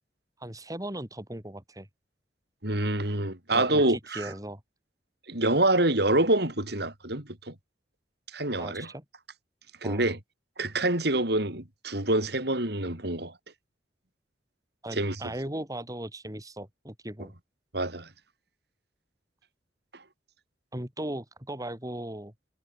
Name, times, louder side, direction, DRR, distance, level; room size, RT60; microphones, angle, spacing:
voice 1, 0.4-1.9 3.5-4.6 8.6-9.0 9.8-10.1 14.8-17.3 20.7-22.3, right 1 dB, 20° right, 3.7 m, -37 dB
voice 2, 2.6-4.3 5.3-7.5 8.3-8.9 9.8-10.2 10.6-13.3 14.9-15.2 17.7-18.1, right 2 dB, 65° right, 5.9 m, -26 dB
head